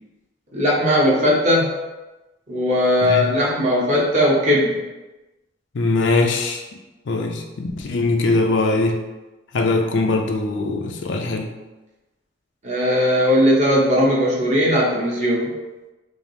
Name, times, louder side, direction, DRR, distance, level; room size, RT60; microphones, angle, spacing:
voice 1, 0.5-1.7 2.5-4.8 12.6-15.5, equal, 40° right, -5 dB, 1.0 m, -18 dB
voice 2, 5.7-6.6 7.1-9.0 9.5-11.5, left 3 dB, 75° left, 3 dB, 0.5 m, -21 dB
5.0 x 2.0 x 3.2 m, 1.1 s
head